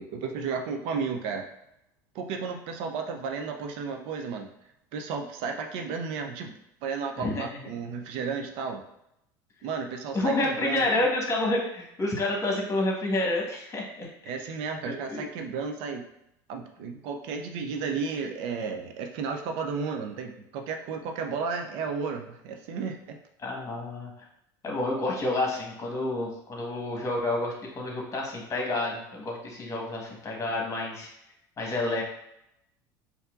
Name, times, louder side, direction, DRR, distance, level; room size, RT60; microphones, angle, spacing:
voice 1, 0.0-1.5 2.1-4.5 4.9-8.8 9.6-11.0 14.3-16.0 16.5-23.2, right 5 dB, 65° right, 4 dB, 0.5 m, -33 dB
voice 2, 7.2-7.6 10.1-14.3 14.8-15.3 23.4-24.1 24.6-31.1 31.6-32.0, left 2 dB, 30° left, -1 dB, 1.3 m, -29 dB
4.3 x 2.7 x 2.4 m, 0.80 s
hypercardioid pair, 85°, 10 cm